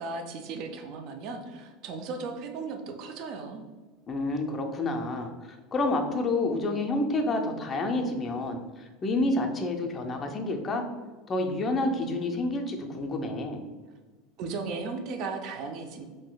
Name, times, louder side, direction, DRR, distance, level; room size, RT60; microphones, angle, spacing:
voice 1, 0.0-3.6 14.4-16.1, right 4 dB, 45° right, 5 dB, 0.4 m, -36 dB
voice 2, 4.1-5.3 5.7-10.8 11.3-13.6, left 2 dB, 25° left, 3 dB, 0.4 m, -29 dB
3.6 x 2.6 x 2.2 m, 1.3 s
supercardioid pair, 145°, 0 cm